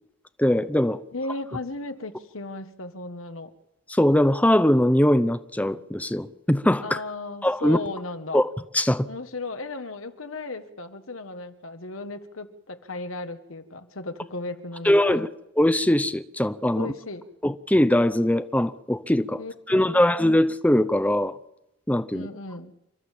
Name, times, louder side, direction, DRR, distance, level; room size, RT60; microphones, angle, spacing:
voice 1, 0.4-1.0 3.9-7.0 7.4-7.8 8.3-8.5 8.7-9.1 14.8-15.3 15.6-16.9 17.4-19.4 19.7-21.4 21.9-22.3, left 1 dB, 5° left, 0.7 m, -21 dB
voice 2, 1.1-3.5 6.8-8.4 9.1-15.3 16.8-17.2 19.4-20.0 22.1-22.7, left 2 dB, 90° left, 1.6 m, -35 dB
29.0 x 13.0 x 7.6 m
head